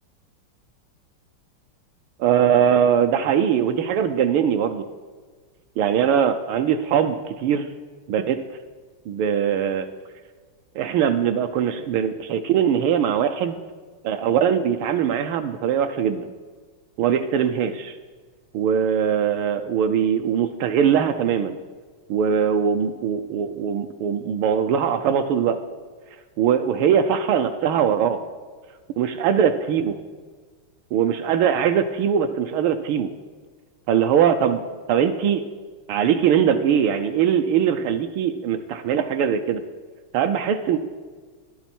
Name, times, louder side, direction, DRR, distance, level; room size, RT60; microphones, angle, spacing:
voice 1, 2.2-4.8 5.8-7.7 8.1-8.6 9.1-9.9 10.7-13.6 14.0-16.3 17.0-18.0 18.5-21.6 22.1-25.6 26.4-28.2 29.0-29.9 30.9-33.1 33.9-34.6 34.9-35.4 35.9-39.6 40.1-40.8, right 8 dB, 75° right, 7 dB, 1.4 m, -21 dB
11.0 x 10.5 x 4.3 m, 1.5 s
omnidirectional pair, 2.4 m